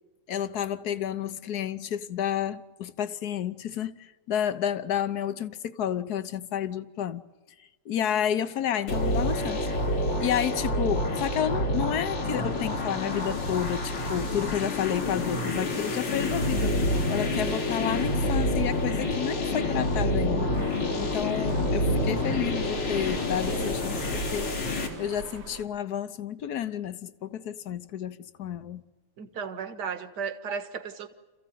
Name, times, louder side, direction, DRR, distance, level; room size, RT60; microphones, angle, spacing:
voice 1, 0.3-7.2 7.9-9.6 10.2-16.8 17.1-20.5 21.0-24.5 25.0-28.8, left 9 dB, 55° left, 1.2 m, -30 dB
sound 1, 8.9-24.9, left 1 dB, 85° left, 4.1 m, -28 dB
sound 2, 20.5-25.6, right 4 dB, 90° right, 3.3 m, -41 dB
voice 2, 29.2-31.1, right 6 dB, 55° right, 1.9 m, -35 dB
28.0 x 15.5 x 9.2 m
omnidirectional pair, 2.4 m